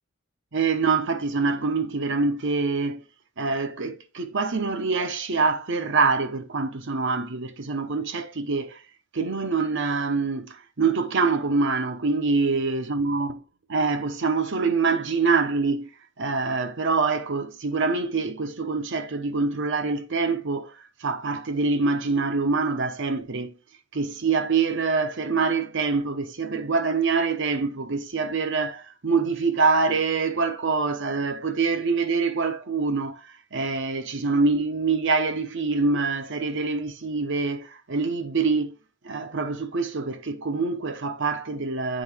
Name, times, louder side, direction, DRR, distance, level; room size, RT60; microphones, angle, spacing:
voice 1, 0.5-3.0 3.4-8.8 9.1-13.4 13.7-15.9 16.2-20.7 21.0-23.5 23.9-33.2 33.5-38.7 39.0-42.0, right 4 dB, 60° right, 0.9 m, -25 dB
8.6 x 3.9 x 3.5 m
head